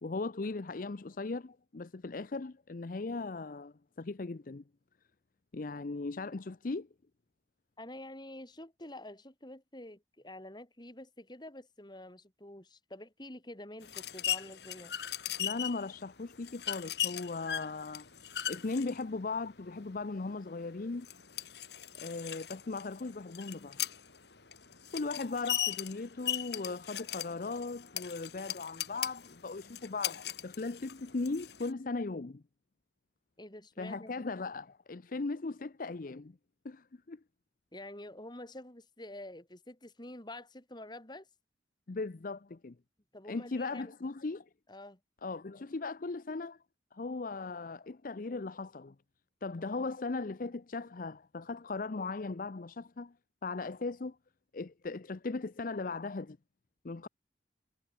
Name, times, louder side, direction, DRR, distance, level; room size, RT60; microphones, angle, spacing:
voice 1, 0.0-4.6 5.5-6.9 15.4-18.1 18.5-21.1 21.9-23.8 24.9-32.4 33.8-36.4 36.6-37.2 41.9-42.8 43.3-44.5 45.2-46.6 46.9-48.9 49.4-53.1 53.4-54.2 54.5-56.4 56.8-57.1, left 3 dB, 50° left, 0.6 m, -38 dB
voice 2, 7.8-14.9 33.4-34.3 37.7-41.3 43.1-43.9 44.7-45.0, left 1 dB, 25° left, 3.2 m, -48 dB
sound 1, 13.8-31.7, left 11 dB, 65° left, 2.3 m, -39 dB
head